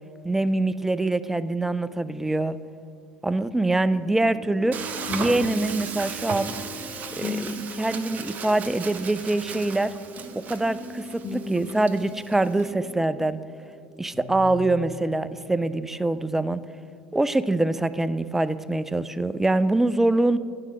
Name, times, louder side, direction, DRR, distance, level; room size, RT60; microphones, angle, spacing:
voice 1, 0.2-2.6 3.2-4.8 5.1-6.5 7.2-9.9 10.4-13.4 14.0-16.6 17.1-20.4, right 2 dB, 5° right, 15 dB, 0.3 m, -24 dB
sound 1, 3.8-13.8 14.1-14.9, left 2 dB, 40° left, 1.4 m, -38 dB
Frying (food), 4.7-12.7, right 6 dB, 40° right, 0.7 m, -36 dB
10.0 x 4.7 x 6.6 m, 2.4 s
figure-of-eight pair, 70°, 4 cm